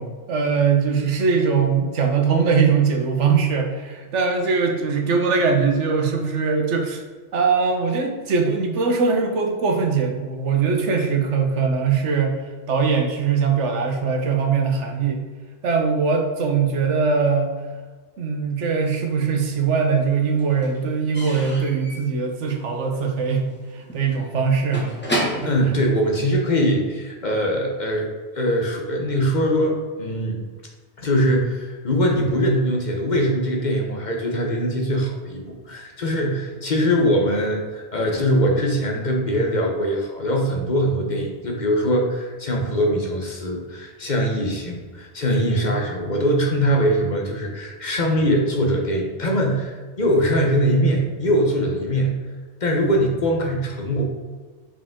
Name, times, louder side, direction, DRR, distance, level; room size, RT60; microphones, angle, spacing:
voice 1, 0.0-7.0 7.3-12.4 12.7-15.2 15.6-17.5 18.2-24.9 25.3-25.5, right 5 dB, 80° right, 2 dB, 1.3 m, -21 dB
Slam / Squeak / Wood, 18.9-19.7 20.0-26.8, right 1 dB, 10° left, 1.4 m, -32 dB
voice 2, 25.4-28.1 28.3-30.4 31.0-52.1 52.6-54.0, equal, 40° left, 1 dB, 1.0 m, -22 dB
5.6 x 5.0 x 3.6 m, 1.4 s
omnidirectional pair, 1.2 m